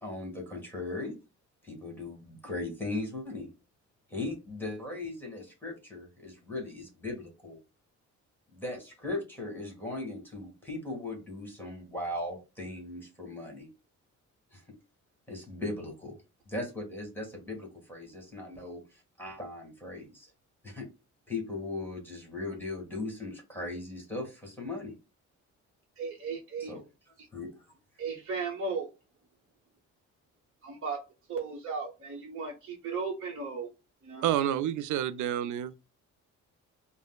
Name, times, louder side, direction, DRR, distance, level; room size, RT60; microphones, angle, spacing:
voice 1, 0.0-1.1 1.6-3.5 4.1-7.6 8.5-13.7 14.5-14.8 15.3-16.2 16.5-20.3 20.6-20.9 21.3-25.0 26.6-26.8 27.3-27.5, left 2 dB, 5° left, 1.7 m, -38 dB
voice 2, 26.0-26.7 27.2-27.3 28.0-28.9 30.6-31.0 31.3-33.7 34.0-34.5, right 4 dB, 45° right, 1.0 m, -36 dB
voice 3, 34.2-35.7, right 11 dB, 75° right, 0.5 m, -29 dB
4.9 x 2.1 x 2.3 m
cardioid pair, 90°, 30 cm